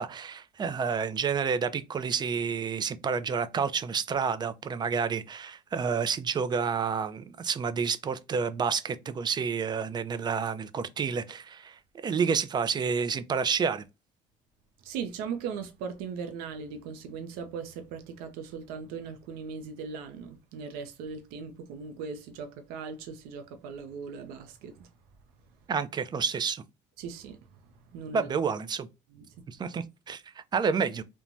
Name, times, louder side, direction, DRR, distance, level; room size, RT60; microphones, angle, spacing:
voice 1, 0.0-13.8 25.7-26.6 28.1-28.9 29.5-31.0, right 6 dB, 30° right, 0.4 m, -29 dB
voice 2, 14.8-24.9 27.0-27.4 27.9-28.3 29.1-29.2, right 6 dB, 85° right, 0.5 m, -39 dB
3.1 x 2.1 x 2.4 m
cardioid pair, 105°, 15 cm